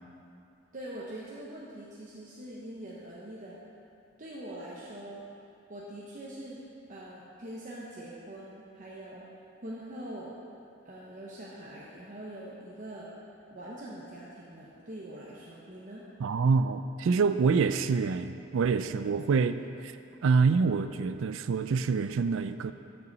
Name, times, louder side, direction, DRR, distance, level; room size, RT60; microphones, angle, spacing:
voice 1, 0.7-3.6 4.2-5.2 5.7-6.6 6.9-9.2 9.6-10.3 10.8-13.1 13.5-16.0, right 1 dB, 40° right, -6 dB, 0.9 m, -43 dB
voice 2, 16.2-19.9 20.2-22.7, right 5 dB, 80° right, 11 dB, 0.4 m, -26 dB
13.5 x 5.7 x 4.0 m, 2.6 s
head